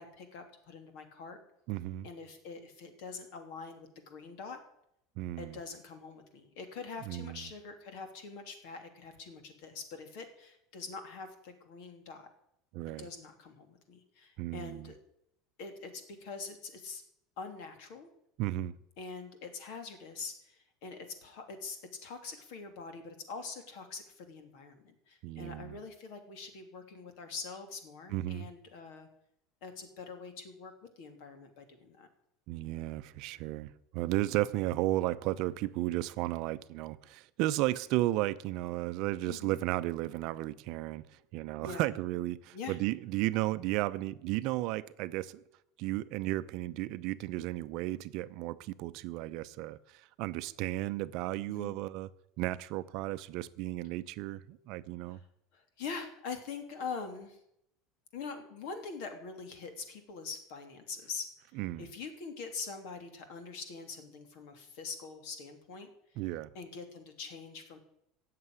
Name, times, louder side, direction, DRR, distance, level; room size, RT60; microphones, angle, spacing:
voice 1, 0.0-1.4 2.0-4.6 5.4-12.3 13.0-15.0 15.6-17.0 17.4-18.1 19.0-29.1 29.6-30.7 31.0-32.1 39.3-39.6 41.6-41.9 42.5-42.8 51.5-51.7 55.1-55.2 55.5-57.4 58.1-61.3 61.8-65.9 66.5-67.8, left 4 dB, 60° left, 3.1 m, -44 dB
voice 2, 1.7-2.1 5.2-5.6 7.1-7.4 12.7-13.1 14.4-14.9 18.4-18.7 25.2-25.8 28.1-28.5 32.5-41.0 41.3-45.4 45.8-52.1 52.4-55.2 61.6-61.9 66.2-66.5, right 16 dB, 50° right, 0.7 m, -34 dB
16.5 x 7.7 x 9.7 m
cardioid pair, 165°, 0 cm